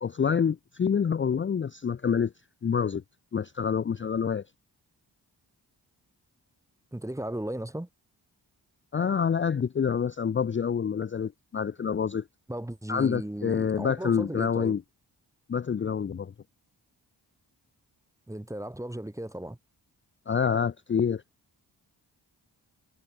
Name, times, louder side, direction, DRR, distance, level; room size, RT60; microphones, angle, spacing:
voice 1, 0.0-2.3 2.6-3.0 3.3-4.4 8.9-12.2 12.9-14.8 15.5-16.3 20.3-21.2, left 7 dB, 25° left, 0.5 m, -27 dB
voice 2, 6.9-7.9 12.5-14.7 18.3-19.6, right 1 dB, 5° right, 0.9 m, -36 dB
supercardioid pair, 40°, 45 cm